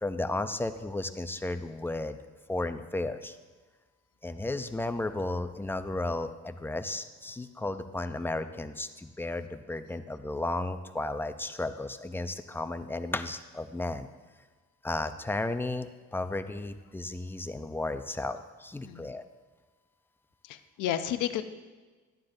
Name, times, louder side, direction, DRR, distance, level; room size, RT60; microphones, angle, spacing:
voice 1, 0.0-2.2 2.5-3.4 4.2-14.1 14.8-19.2, left 2 dB, 5° left, 9 dB, 0.4 m, -34 dB
voice 2, 20.5-21.4, left 11 dB, 90° left, 10 dB, 0.6 m, -31 dB
12.0 x 9.5 x 2.6 m, 1.3 s
cardioid pair, 90°, 30 cm